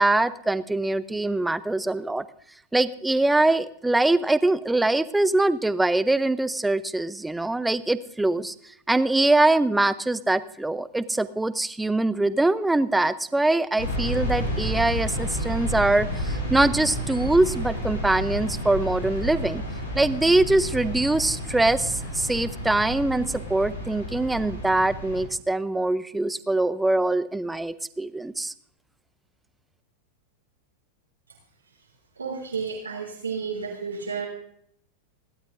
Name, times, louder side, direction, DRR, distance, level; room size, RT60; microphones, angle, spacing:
voice 1, 0.0-2.2 2.7-8.5 8.9-19.6 19.9-28.5, right 2 dB, 5° right, 16 dB, 0.6 m, -23 dB
sound 1, 13.8-25.3, equal, 75° left, 5.4 m, -31 dB
voice 2, 32.2-34.3, right 5 dB, 75° right, -1 dB, 2.9 m, -31 dB
29.0 x 12.0 x 2.6 m, 0.68 s
figure-of-eight pair, 90°, 0 cm